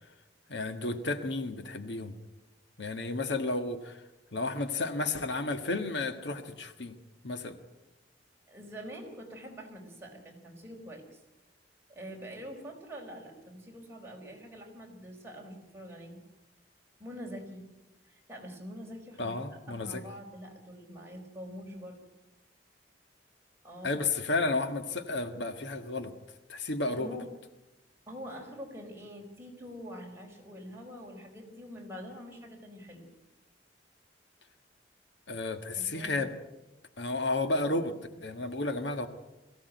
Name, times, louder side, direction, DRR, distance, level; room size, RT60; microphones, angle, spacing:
voice 1, 0.5-2.1 2.8-4.0 4.3-7.0 7.2-7.6 19.2-20.0 23.8-26.1 26.5-27.2 35.3-36.3 37.0-39.1, left 2 dB, 70° left, 8 dB, 1.6 m, -32 dB
voice 2, 8.5-11.2 11.9-16.2 17.0-17.6 18.0-22.0 23.6-23.9 26.8-27.2 28.1-33.1 35.8-36.2, equal, 15° right, 0 dB, 4.6 m, -45 dB
22.5 x 16.0 x 9.3 m, 1.0 s
head